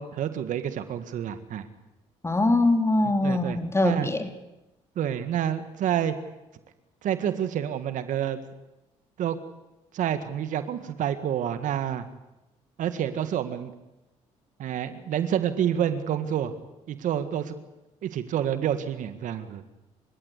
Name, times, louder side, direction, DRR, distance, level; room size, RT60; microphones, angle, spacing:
voice 1, 0.0-1.7 3.2-4.1 5.0-6.2 7.0-8.4 9.2-9.4 9.9-12.1 12.8-13.7 14.6-16.5 16.9-17.6 18.0-19.6, right 10 dB, 70° right, 11 dB, 1.9 m, -28 dB
voice 2, 2.2-4.3, left 2 dB, 20° left, 7 dB, 3.4 m, -23 dB
29.5 x 16.0 x 8.4 m, 0.97 s
supercardioid pair, 75°, 14 cm